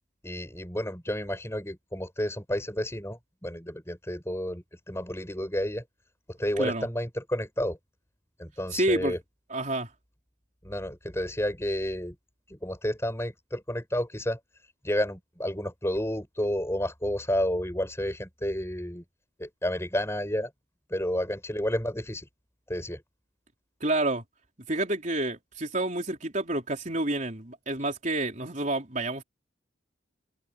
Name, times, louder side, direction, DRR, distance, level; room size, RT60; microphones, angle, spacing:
voice 1, 0.2-5.8 6.3-7.8 8.4-9.2 10.6-12.2 12.5-14.4 14.8-19.0 19.4-20.5 20.9-22.3 22.7-23.0, equal, 15° left, 7.9 m, -31 dB
voice 2, 6.6-6.9 8.7-9.2 9.5-9.9 23.8-24.2 24.7-29.2, right 1 dB, 40° right, 4.0 m, -29 dB
head